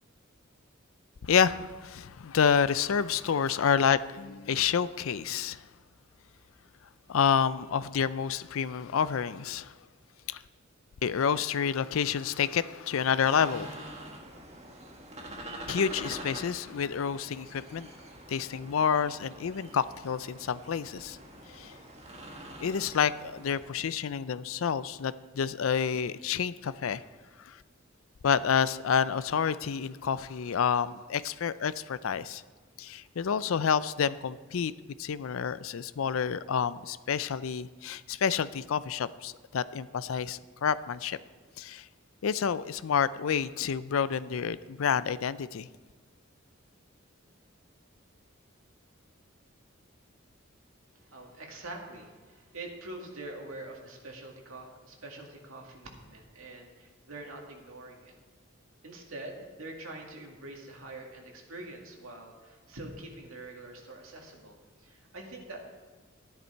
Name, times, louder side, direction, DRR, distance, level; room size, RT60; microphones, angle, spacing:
voice 1, 1.2-5.7 7.1-9.7 10.3-10.4 11.0-13.9 15.7-17.9 18.3-21.2 21.5-21.8 22.6-27.0 27.4-27.6 28.2-32.4 32.8-34.7 35.0-41.2 41.6-41.9 42.2-45.7, left 7 dB, 80° left, 16 dB, 0.4 m, -29 dB
sound 1, 13.2-23.7, right 1 dB, 30° right, 1.5 m, -45 dB
voice 2, 51.0-58.1 58.8-65.6, right 2 dB, 90° right, 0 dB, 2.2 m, -45 dB
13.0 x 10.5 x 4.5 m, 1.3 s
head